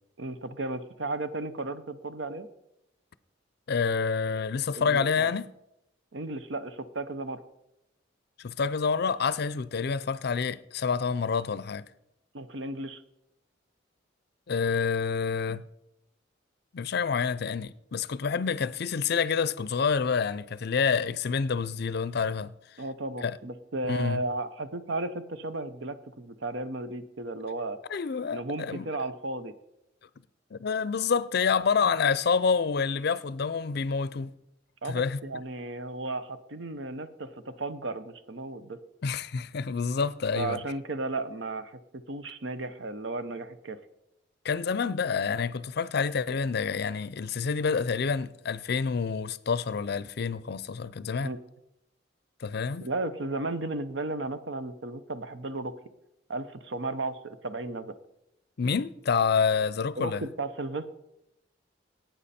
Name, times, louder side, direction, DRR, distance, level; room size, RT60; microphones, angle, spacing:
voice 1, 0.2-2.5 4.7-5.3 6.1-7.4 12.3-13.0 22.8-27.8 28.3-29.5 34.8-38.8 40.3-43.8 51.2-51.4 52.8-55.7 56.3-57.9 60.0-60.9, right 2 dB, 70° right, 0.8 m, -34 dB
voice 2, 3.7-5.5 8.4-11.9 14.5-15.6 16.7-22.5 23.2-23.4 23.9-24.2 27.9-28.9 30.5-34.3 34.8-35.2 39.0-40.6 44.4-51.3 52.4-52.9 58.6-60.2, left 5 dB, 55° left, 0.5 m, -28 dB
18.0 x 9.0 x 4.3 m
head